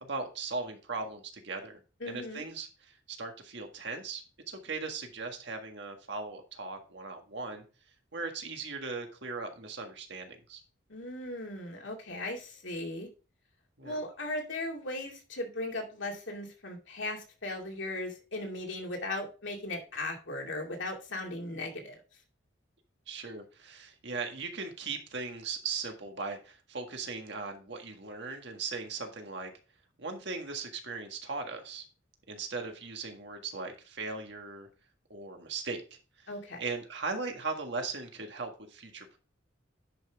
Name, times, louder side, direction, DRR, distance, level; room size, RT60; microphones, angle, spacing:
voice 1, 0.0-1.8 2.1-7.6 8.1-10.6 13.8-14.0 23.1-29.5 30.0-31.8 32.3-34.7 35.1-36.3 36.6-39.2, right 4 dB, 60° right, 4 dB, 1.7 m, -38 dB
voice 2, 2.0-2.4 10.9-13.1 13.8-22.0 36.3-36.6, left 2 dB, 70° left, 1 dB, 2.5 m, -37 dB
10.5 x 5.7 x 3.5 m, 0.34 s
head